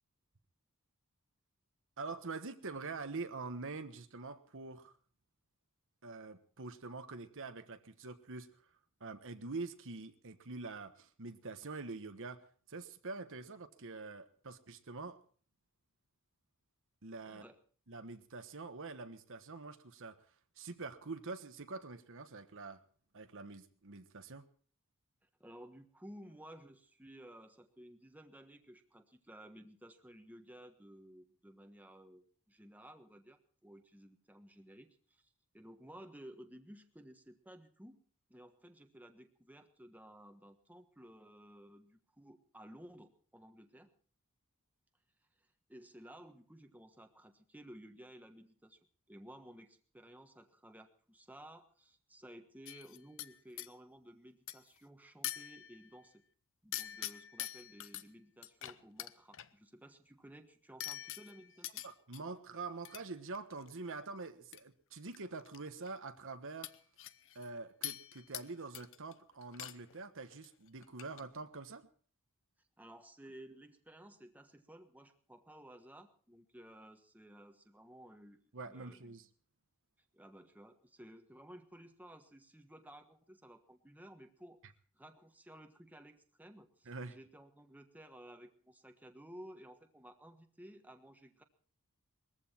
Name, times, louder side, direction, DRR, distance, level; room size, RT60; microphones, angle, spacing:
voice 1, 2.0-5.0 6.0-8.6 9.0-15.2 17.0-17.4 17.9-22.8 23.1-24.5 61.8-66.7 67.3-71.9 78.5-79.3 86.8-87.2, right 3 dB, 60° right, 9 dB, 1.3 m, -45 dB
voice 2, 17.3-17.6 25.2-35.3 35.5-38.0 38.3-43.9 45.7-48.8 49.1-56.2 56.6-61.8 72.8-78.4 78.7-79.1 80.1-84.6 84.9-91.4, right 1 dB, 5° right, 6 dB, 1.3 m, -55 dB
sound 1, 52.7-53.7 54.5-54.8 55.2-56.0 56.7-58.0 58.4-59.5 60.8-62.2 62.9-63.0 63.3-63.7 64.5-64.6 64.9-65.6 65.9-66.0 66.6-67.5 67.8-68.5 68.7-69.1 69.4-70.0 70.2-70.5 70.8-71.2, left 13 dB, 60° left, 0.8 m, -44 dB
21.0 x 14.5 x 4.4 m, 0.43 s
head